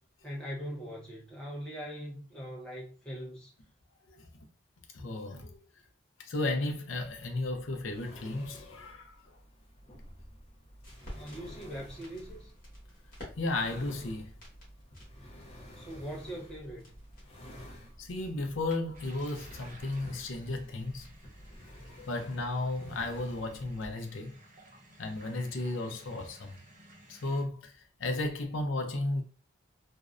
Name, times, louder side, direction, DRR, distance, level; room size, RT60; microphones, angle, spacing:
voice 1, 0.2-3.5 11.1-12.5 15.8-17.0, equal, 5° left, 0.8 m, -41 dB
voice 2, 4.9-5.6 6.2-9.2 11.1-11.2 13.4-14.3 18.0-21.1 21.7-24.4 25.0-26.6 27.1-29.2, left 2 dB, 75° left, 0.6 m, -34 dB
sound 1, 7.0-24.0, equal, 30° left, 0.5 m, -52 dB
sound 2, 10.3-21.6, equal, 45° left, 1.1 m, -53 dB
sound 3, 18.9-27.4, right 1 dB, 40° right, 0.6 m, -56 dB
2.5 x 2.0 x 2.4 m
head